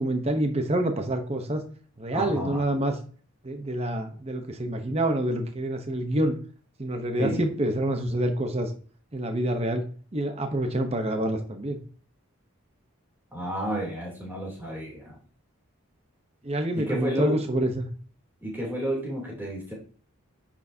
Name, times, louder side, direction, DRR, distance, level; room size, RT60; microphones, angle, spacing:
voice 1, 0.0-1.6 2.0-3.0 3.4-6.3 6.8-8.7 9.1-9.8 10.1-11.8 16.4-17.9, right 1 dB, 30° right, 5 dB, 0.9 m, -27 dB
voice 2, 2.1-2.6 7.2-7.4 13.3-15.2 16.8-17.4 18.4-19.7, equal, 10° right, -3 dB, 2.9 m, -31 dB
9.7 x 7.3 x 2.7 m, 0.42 s
head